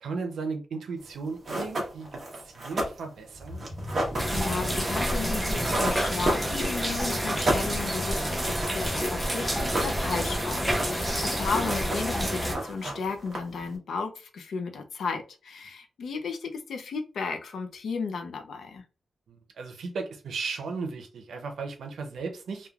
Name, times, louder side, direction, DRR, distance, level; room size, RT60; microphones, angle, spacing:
voice 1, 0.0-3.7 19.3-22.7, right 4 dB, 80° right, 0.6 m, -36 dB
sound 1, 1.1-1.2 1.4-6.9 7.2-9.1 9.4-10.3 10.6-11.2 11.5-12.2 12.5-13.7, right 1 dB, 30° right, 0.9 m, -32 dB
sound 2, 3.3-9.1 9.5-9.7 10.0-10.1, left 1 dB, 50° left, 0.9 m, -41 dB
sound 3, 4.2-12.5, equal, 5° right, 0.6 m, -28 dB
voice 2, 4.3-18.9, left 5 dB, 70° left, 0.5 m, -34 dB
3.1 x 2.2 x 2.4 m
wide cardioid pair, 165°, 0 cm